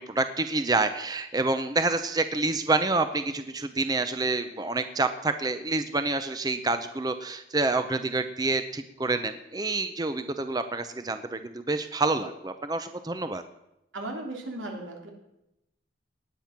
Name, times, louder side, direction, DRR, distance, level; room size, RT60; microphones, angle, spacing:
voice 1, 0.0-13.4, right 3 dB, 20° right, 9 dB, 0.6 m, -28 dB
voice 2, 13.9-15.1, right 2 dB, 90° right, 1 dB, 3.3 m, -36 dB
19.0 x 9.1 x 5.9 m, 0.88 s
head